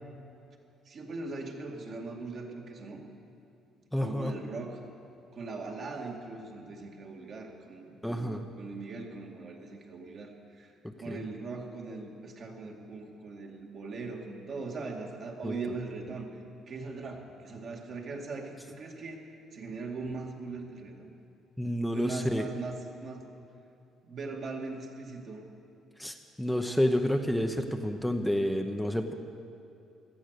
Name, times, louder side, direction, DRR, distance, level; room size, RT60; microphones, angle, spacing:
voice 1, 0.8-3.0 4.0-4.8 5.3-10.7 11.0-16.3 16.7-19.2 19.5-21.1 21.9-23.3 24.0-25.4, right 3 dB, 55° right, 0 dB, 2.3 m, -40 dB
voice 2, 3.9-4.3 8.0-8.4 11.1-11.2 15.4-15.6 21.6-22.4 26.0-29.1, equal, 5° left, 5 dB, 0.8 m, -29 dB
17.5 x 12.5 x 6.7 m, 2.6 s
cardioid pair, 90°, 0 cm